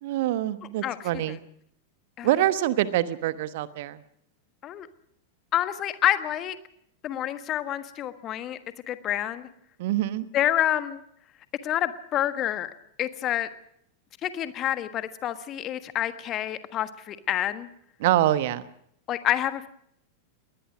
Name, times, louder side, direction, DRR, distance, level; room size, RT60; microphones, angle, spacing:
voice 1, 0.0-1.4 2.2-4.0 9.8-10.3 18.0-18.7, right 13 dB, 50° right, 14 dB, 1.1 m, -25 dB
voice 2, 5.5-6.6 7.0-8.6 8.9-9.5 10.3-11.0 11.6-12.7 13.0-13.5 14.2-17.7 19.1-19.7, left 12 dB, 30° left, 11 dB, 1.4 m, -28 dB
21.5 x 19.5 x 6.3 m, 0.72 s
figure-of-eight pair, 90°, 0 cm